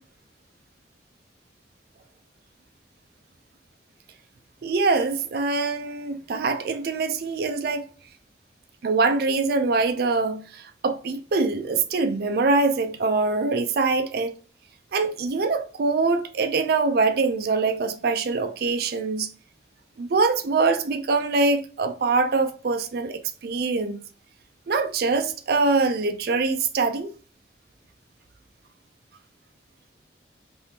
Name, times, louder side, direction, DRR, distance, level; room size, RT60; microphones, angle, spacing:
voice 1, 4.6-7.9 8.8-14.3 14.9-19.3 20.0-24.0 24.7-27.1, right 3 dB, 55° right, 0.4 m, -24 dB
3.4 x 2.6 x 2.7 m
head